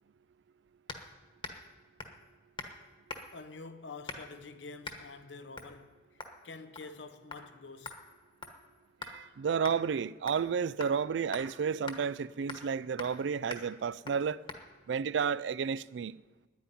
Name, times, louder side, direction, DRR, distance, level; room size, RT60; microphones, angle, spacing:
sound 1, 0.9-1.1 1.4-1.7 2.0-2.2 2.6-2.8 3.1-3.4 4.1-4.4 4.8-5.0 5.6-5.7 6.2-6.4 6.8-7.0 7.3-7.4 7.9-9.2 9.6-9.8 10.3-10.5 10.8-11.0 11.3-11.5 11.9-12.0 12.5-12.7 13.0-13.2 13.5-13.7 14.1-14.2 14.5-14.6, left 3 dB, 30° left, 1.3 m, -43 dB
voice 1, 3.3-6.0 6.4-8.0, left 3 dB, 80° left, 0.9 m, -47 dB
voice 2, 9.0-14.4 14.9-16.2, right 6 dB, 75° right, 0.4 m, -32 dB
9.9 x 9.4 x 9.7 m
head